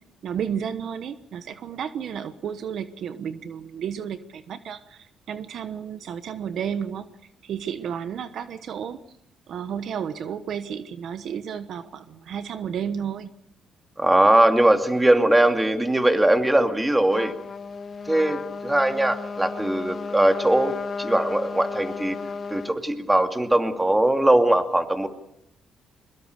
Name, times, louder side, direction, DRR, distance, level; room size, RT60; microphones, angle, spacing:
voice 1, 0.2-7.1 7.4-9.0 9.5-13.3, right 8 dB, 65° right, 11 dB, 1.2 m, -32 dB
voice 2, 14.0-17.3 18.1-20.7 21.0-22.2 22.5-25.1, right 1 dB, 10° right, 5 dB, 2.5 m, -20 dB
Trumpet, 17.1-22.7, left 5 dB, 40° left, 1.5 m, -34 dB
23.0 x 21.5 x 6.7 m, 0.77 s
cardioid pair, 90°, 0 cm